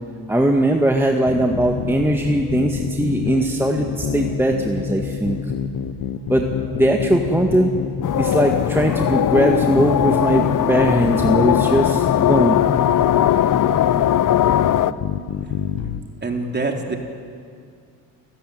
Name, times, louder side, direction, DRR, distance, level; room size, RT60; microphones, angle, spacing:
voice 1, 0.3-5.4 6.3-6.5 6.7-7.7 8.2-12.6, right 1 dB, 5° right, 2 dB, 1.9 m, -19 dB
sound 1, 1.3-16.0, left 9 dB, 75° left, 1.2 m, -28 dB
sound 2, 1.6-13.6, left 4 dB, 35° left, 6.9 m, -32 dB
sound 3, 8.0-14.9, left 11 dB, 55° left, 0.8 m, -19 dB
voice 2, 16.2-17.0, right 3 dB, 25° right, 2 dB, 3.8 m, -25 dB
28.5 x 14.0 x 9.5 m, 2.2 s
supercardioid pair, 70°, 38 cm